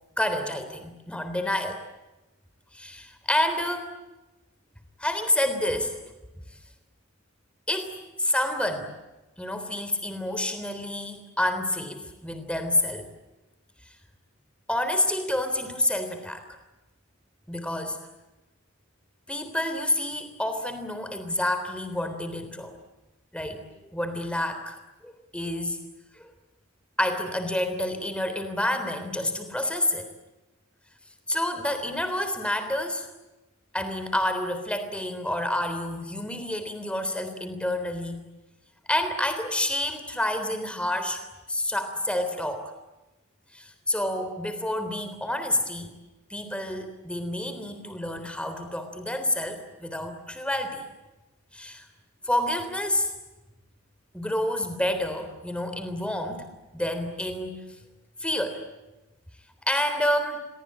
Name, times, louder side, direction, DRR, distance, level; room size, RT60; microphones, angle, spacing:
voice 1, 0.2-1.8 2.7-3.9 5.0-6.0 7.7-8.9 9.4-13.1 14.7-16.4 17.5-18.0 19.3-22.7 23.3-23.7 23.9-24.8 25.0-25.8 26.1-26.3 27.0-30.1 31.3-33.1 33.7-38.2 38.9-41.2 41.5-42.7 43.5-45.9 46.3-50.9 51.5-51.9 52.2-53.1 54.1-56.5 56.7-57.8 58.2-58.6 59.6-60.4, left 1 dB, 5° left, 8 dB, 3.5 m, -28 dB
29.0 x 23.5 x 8.7 m, 1.0 s
head